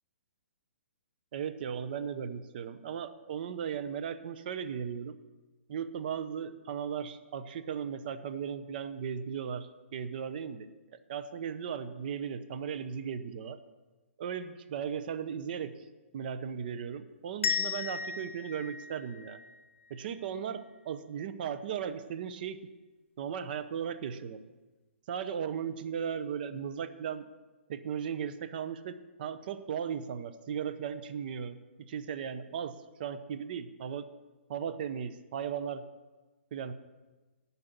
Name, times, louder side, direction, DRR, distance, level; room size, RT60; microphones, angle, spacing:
voice 1, 1.3-5.2 5.7-10.7 11.1-13.6 14.2-15.7 16.1-19.4 19.9-22.6 23.2-24.4 25.1-27.3 27.7-32.7 33.0-34.1 34.5-35.8 36.5-36.7, right 7 dB, 45° right, 11 dB, 0.7 m, -36 dB
sound 1, 17.4-20.2, left 6 dB, 70° left, 0.8 m, -35 dB
9.6 x 5.7 x 7.9 m, 1.2 s
hypercardioid pair, 150°, 7 cm